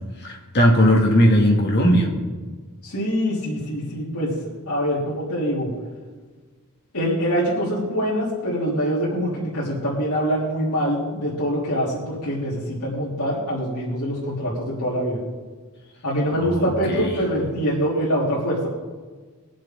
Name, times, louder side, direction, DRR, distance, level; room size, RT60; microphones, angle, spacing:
voice 1, 0.2-2.1 16.4-17.1, equal, 50° left, 0 dB, 2.2 m, -18 dB
voice 2, 2.8-4.3 4.7-5.7 6.9-15.2 16.0-18.7, equal, 80° left, -7 dB, 3.3 m, -24 dB
22.5 x 7.5 x 3.8 m, 1.4 s
head